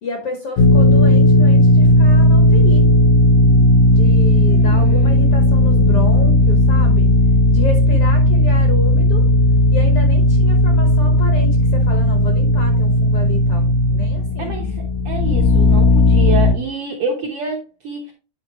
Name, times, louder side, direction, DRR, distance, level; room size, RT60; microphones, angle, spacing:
voice 1, 0.0-2.8 3.8-7.1 7.5-9.2 9.7-14.8, left 3 dB, 60° left, 4 dB, 1.6 m, -30 dB
sound 1, 0.6-16.5, left 1 dB, 75° left, 2.4 m, -14 dB
voice 2, 4.5-5.1 8.3-8.5 14.4-14.7 15.0-18.1, right 5 dB, 65° right, 0 dB, 1.5 m, -27 dB
9.4 x 5.2 x 3.0 m, 0.34 s
omnidirectional pair, 3.9 m